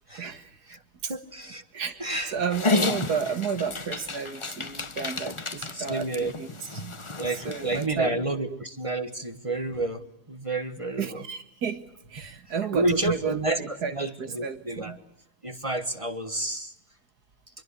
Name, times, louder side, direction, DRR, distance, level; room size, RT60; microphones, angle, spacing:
voice 1, 0.1-0.8 1.0-1.1 1.7-6.5 6.7-7.0 7.3-8.6 11.0-11.8 12.1-15.0, right 6 dB, 75° right, 11 dB, 2.3 m, -32 dB
voice 2, 1.1-1.6 2.0-2.4 5.7-6.3 7.2-10.0 10.3-11.2 12.7-15.0 15.4-16.7, right 2 dB, 20° right, 10 dB, 1.4 m, -30 dB
Dog, 2.5-7.9, left 3 dB, 25° left, 0.8 m, -31 dB
25.0 x 22.5 x 8.5 m, 0.80 s
omnidirectional pair, 1.7 m